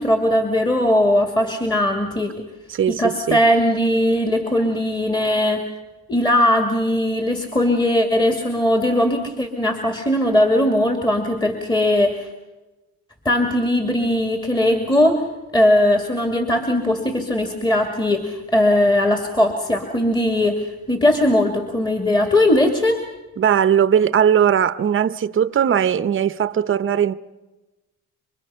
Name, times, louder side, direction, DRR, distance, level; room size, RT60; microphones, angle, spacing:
voice 1, 0.0-2.5 2.9-5.7 6.1-12.3 13.2-15.3 15.5-23.1, left 1 dB, 15° left, 2.4 m, -19 dB
voice 2, 2.7-3.4 23.4-27.1, right 8 dB, 40° right, 0.9 m, -19 dB
27.5 x 24.0 x 5.7 m
cardioid pair, 90°, 30 cm